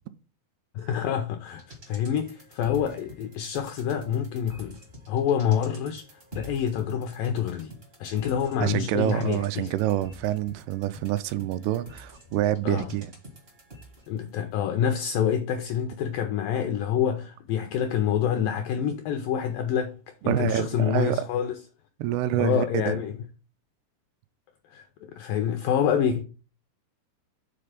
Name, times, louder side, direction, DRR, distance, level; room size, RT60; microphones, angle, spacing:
voice 1, 0.8-4.8 5.1-7.7 8.0-9.7 12.6-12.9 14.1-21.5 22.4-23.1 24.7-26.2, left 8 dB, 85° left, 1.9 m, -27 dB
sound 1, 1.5-14.3 14.6-14.7, equal, 60° right, 0.6 m, -48 dB
voice 2, 8.6-13.1 20.3-21.3 22.0-23.0, right 13 dB, 85° right, 2.5 m, -27 dB
6.7 x 4.0 x 5.1 m
omnidirectional pair, 4.6 m